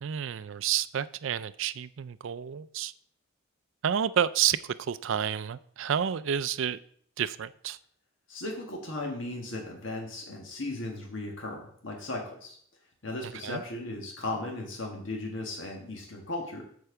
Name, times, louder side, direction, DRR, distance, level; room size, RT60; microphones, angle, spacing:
voice 1, 0.0-2.9 3.8-6.8 7.2-7.8 13.4-13.6, right 9 dB, 60° right, 15 dB, 0.4 m, -30 dB
voice 2, 8.3-12.6 13.0-16.6, left 2 dB, 60° left, 0 dB, 1.5 m, -36 dB
8.3 x 4.5 x 6.8 m, 0.63 s
head